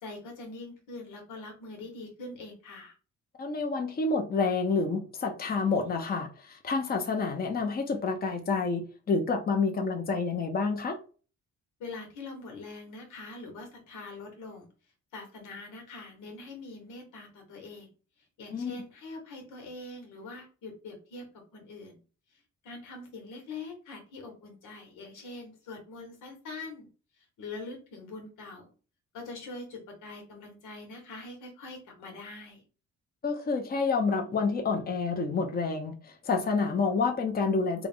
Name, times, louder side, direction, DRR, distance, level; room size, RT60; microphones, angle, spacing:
voice 1, 0.0-2.9 11.8-14.7 15.1-17.9 18.4-22.0 22.3-26.9 27.2-28.7 29.1-32.6, left 3 dB, 90° left, 1.4 m, -43 dB
voice 2, 3.4-11.0 18.5-18.7 33.2-37.9, left 4 dB, 30° left, 0.7 m, -28 dB
3.5 x 2.5 x 3.5 m
cardioid pair, 90°, 30 cm